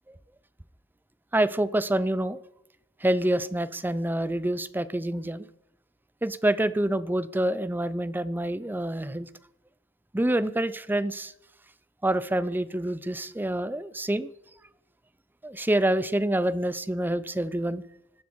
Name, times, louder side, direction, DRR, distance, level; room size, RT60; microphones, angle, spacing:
voice 1, 1.3-2.4 3.0-5.5 6.2-9.3 10.1-11.3 12.0-14.3 15.4-17.8, right 1 dB, 10° right, 16 dB, 0.5 m, -27 dB
19.0 x 14.5 x 4.7 m, 0.85 s
head